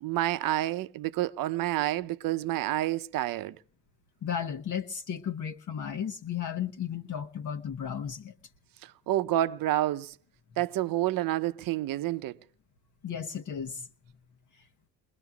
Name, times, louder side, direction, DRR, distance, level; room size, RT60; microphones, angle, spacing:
voice 1, 0.0-3.6 8.8-10.1 10.6-12.4, right 14 dB, 65° right, 0.7 m, -29 dB
voice 2, 4.2-8.3 10.5-10.6 13.0-13.9, left 8 dB, 55° left, 1.1 m, -34 dB
29.5 x 20.5 x 2.3 m
supercardioid pair, 70°, 37 cm